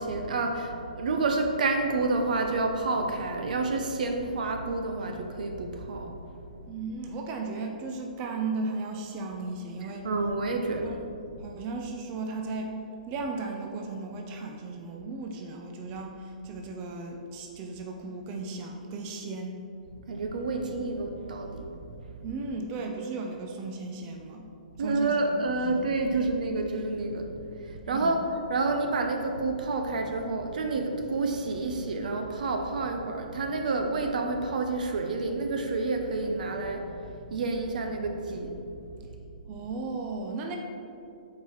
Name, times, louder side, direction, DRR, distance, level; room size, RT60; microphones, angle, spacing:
voice 1, 0.0-6.4 10.0-11.0 20.1-21.7 24.8-27.3 27.6-39.0, right 3 dB, 70° right, 4 dB, 0.7 m, -29 dB
voice 2, 6.7-10.1 10.8-11.0 11.4-12.8 13.1-19.6 22.2-24.4 24.8-26.2 27.9-28.2 39.5-40.6, right 3 dB, 30° right, 2 dB, 0.5 m, -36 dB
7.9 x 4.7 x 3.1 m, 2.6 s
hypercardioid pair, 150°, 5 cm